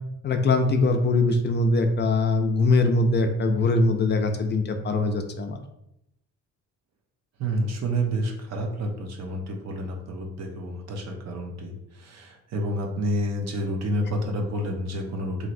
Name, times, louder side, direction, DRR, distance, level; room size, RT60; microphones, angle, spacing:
voice 1, 0.2-5.6, left 2 dB, 35° left, 5 dB, 0.4 m, -22 dB
voice 2, 7.4-15.5, right 1 dB, 60° right, 1 dB, 0.7 m, -29 dB
3.0 x 2.7 x 2.5 m, 0.82 s
cardioid pair, 90°, 30 cm